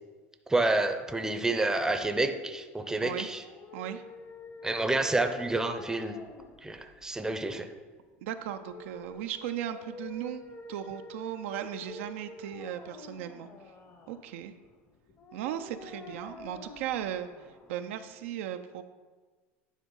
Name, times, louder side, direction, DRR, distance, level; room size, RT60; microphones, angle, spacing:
voice 1, 0.5-3.4 4.6-6.2 6.6-7.7, right 2 dB, 10° right, 7 dB, 0.7 m, -29 dB
sound 1, 3.3-18.3, left 2 dB, 35° left, 1.0 m, -48 dB
voice 2, 8.2-10.4 10.7-13.5 14.1-14.5 15.3-18.8, right 10 dB, 75° right, 7 dB, 0.5 m, -37 dB
9.6 x 3.6 x 5.4 m, 1.4 s
hypercardioid pair, 90°, 7 cm